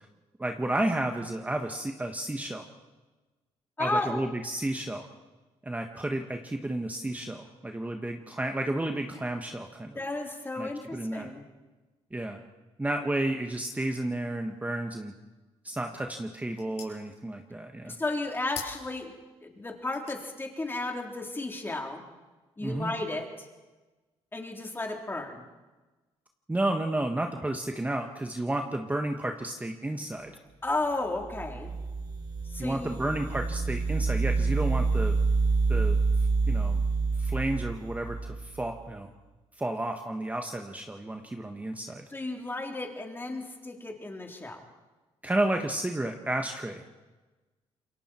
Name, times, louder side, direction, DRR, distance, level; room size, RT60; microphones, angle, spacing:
voice 1, 0.4-2.6 3.8-5.1 5.6-10.0 10.5-11.3 12.1-12.4 12.8-15.1 15.6-18.0 22.6-22.9 26.5-30.3 32.6-35.2 35.7-36.0 36.5-36.8 37.2-39.1 39.6-42.1 45.2-46.9, right 1 dB, 15° right, 4 dB, 1.5 m, -32 dB
voice 2, 3.8-4.3 10.0-11.5 17.8-19.1 19.4-22.0 22.6-23.5 24.3-25.4 30.6-31.7 32.5-33.0 42.1-44.6, left 2 dB, 20° left, 1 dB, 3.8 m, -33 dB
sound 1, 15.5-22.4, left 6 dB, 70° left, 6.4 m, -49 dB
sound 2, 31.2-38.7, right 4 dB, 40° right, 3.1 m, -27 dB
27.5 x 22.5 x 4.5 m, 1.2 s
cardioid pair, 90°, 11 cm